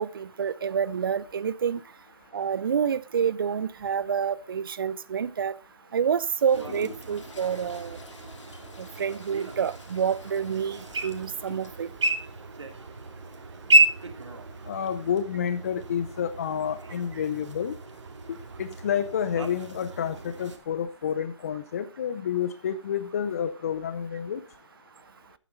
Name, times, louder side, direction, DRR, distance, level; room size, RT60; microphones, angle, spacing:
voice 1, 0.0-1.8 2.3-5.5 5.9-8.0 8.8-11.9, right 7 dB, 45° right, 17 dB, 0.6 m, -28 dB
Toilet flush, 6.4-12.2, left 3 dB, 75° left, 2.4 m, -48 dB
sound 1, 6.5-20.6, right 1 dB, 70° right, 2.4 m, -31 dB
voice 2, 14.7-17.7 18.6-24.4, left 8 dB, 30° left, 11 dB, 0.6 m, -29 dB
11.5 x 9.2 x 3.9 m, 0.31 s
hypercardioid pair, 160°, 16 cm